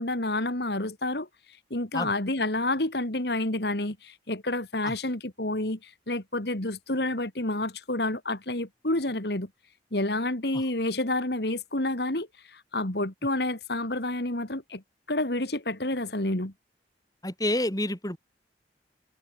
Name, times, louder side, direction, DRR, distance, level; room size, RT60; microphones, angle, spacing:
voice 1, 0.0-9.5 9.9-14.8 15.1-16.5, left 2 dB, 60° left, 2.8 m, -29 dB
voice 2, 17.2-18.2, left 1 dB, 20° left, 4.2 m, -28 dB
head